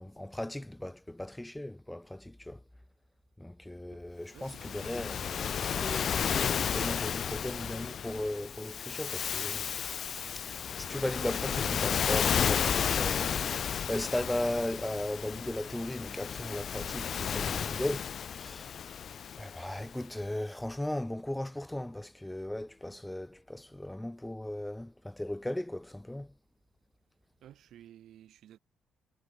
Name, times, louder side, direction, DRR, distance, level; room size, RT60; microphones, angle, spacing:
voice 1, 0.0-2.6 3.4-9.7 10.4-13.4 13.9-18.7 19.4-26.3, left 1 dB, 10° left, 5.4 m, -37 dB
voice 2, 4.3-4.8 27.4-28.6, right 11 dB, 75° right, 7.5 m, -54 dB
Waves surf, 4.4-19.9, left 8 dB, 55° left, 0.5 m, -33 dB
cardioid pair, 90°, 0 cm